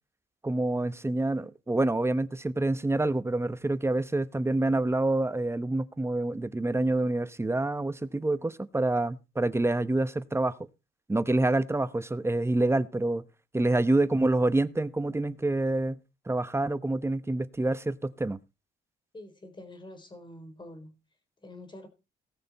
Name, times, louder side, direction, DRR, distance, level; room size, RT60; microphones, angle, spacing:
voice 1, 0.4-10.6 11.1-13.2 13.5-16.0 16.3-18.4, right 2 dB, 15° right, 0.9 m, -27 dB
voice 2, 19.1-21.0 21.4-21.9, left 1 dB, 25° left, 3.9 m, -46 dB
18.5 x 6.7 x 4.2 m
cardioid pair, 90°, 20 cm